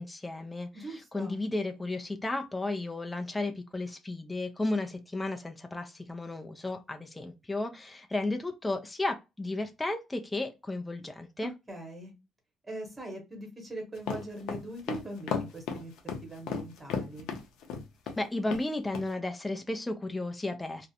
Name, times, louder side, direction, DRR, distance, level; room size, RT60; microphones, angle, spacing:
voice 1, 0.0-11.5 18.2-20.9, left 2 dB, 10° left, 0.3 m, -34 dB
voice 2, 0.7-1.4 11.4-12.1 12.6-15.9 16.2-17.3, right 2 dB, 10° right, 0.9 m, -41 dB
sound 1, 14.0-18.2 18.5-18.6 18.9-19.1, left 6 dB, 85° left, 0.5 m, -34 dB
2.4 x 2.0 x 2.7 m
cardioid pair, 140°, 0 cm